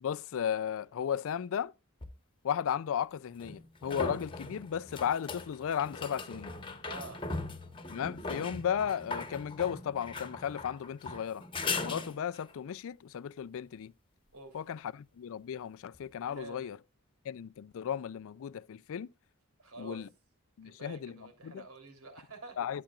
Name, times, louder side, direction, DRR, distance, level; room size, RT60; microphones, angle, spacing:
voice 1, 0.0-1.7 2.4-6.5 7.9-11.4 11.8-13.9 14.5-16.8 17.3-19.1 19.8-20.1 20.6-21.1 21.4-21.6 22.6-22.8, left 8 dB, 65° left, 0.4 m, -35 dB
sound 1, 2.0-2.1 3.4-12.5 15.9-16.0, left 3 dB, 25° left, 1.1 m, -39 dB
voice 2, 6.8-7.2 14.3-14.6 16.2-16.8 19.6-20.1 20.6-22.6, right 3 dB, 75° right, 3.3 m, -48 dB
11.5 x 8.6 x 2.4 m
head